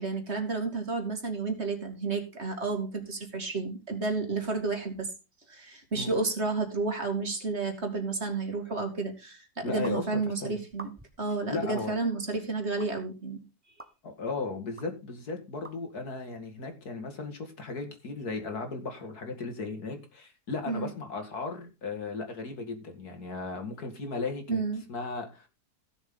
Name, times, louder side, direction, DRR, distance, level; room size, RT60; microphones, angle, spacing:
voice 1, 0.0-5.1 5.5-10.9 11.2-13.4 20.7-20.9 24.5-24.8, right 3 dB, 40° right, 4 dB, 2.6 m, -31 dB
voice 2, 9.6-10.6 11.5-11.9 14.0-24.6 24.9-25.5, left 3 dB, 75° left, 5 dB, 2.8 m, -36 dB
sound 1, 9.8-10.0 10.7-11.2 11.8-11.9 12.8-12.9 13.8-13.9 14.8-14.9 15.6-15.8, right 2 dB, 10° right, 0.9 m, -45 dB
16.0 x 7.0 x 3.8 m, 0.29 s
omnidirectional pair, 1.7 m